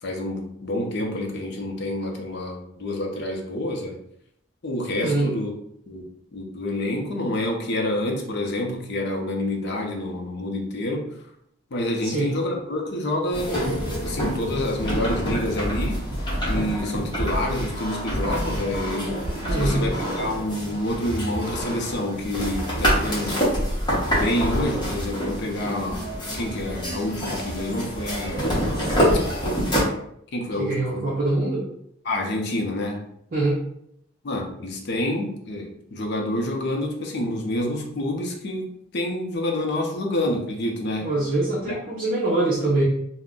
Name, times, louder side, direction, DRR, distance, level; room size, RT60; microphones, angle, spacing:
voice 1, 0.0-4.0 4.6-5.5 5.9-6.0 6.3-11.3 11.7-16.1 16.5-23.5 24.1-28.6 30.3-31.1 32.0-33.1 34.2-41.1 41.6-41.8, left 1 dB, 55° left, 1 dB, 0.5 m, -28 dB
sound 1, 13.3-29.8, equal, 20° left, 0.8 m, -26 dB
voice 2, 19.5-19.8 30.6-31.6 33.3-33.6 41.0-42.8, right 2 dB, 45° right, -6 dB, 0.6 m, -23 dB
2.4 x 2.1 x 3.5 m, 0.73 s
head